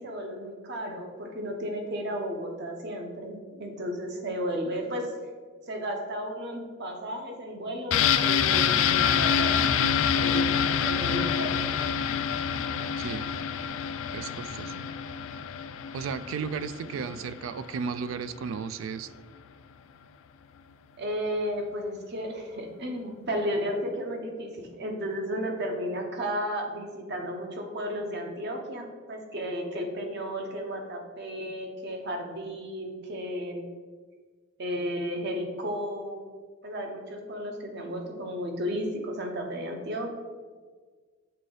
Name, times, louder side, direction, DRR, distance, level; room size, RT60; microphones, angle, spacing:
voice 1, 0.0-5.1 5.7-9.8 10.2-11.6 16.9-17.0 21.0-33.6 34.6-36.3 36.6-40.1, equal, 55° right, 3 dB, 0.9 m, -33 dB
sound 1, 7.9-17.5 17.8-17.9, left 8 dB, 75° left, 0.3 m, -26 dB
voice 2, 13.0-13.3 14.1-14.9 15.9-19.1, right 6 dB, 75° right, 14 dB, 0.3 m, -34 dB
6.7 x 3.7 x 3.9 m, 1.5 s
head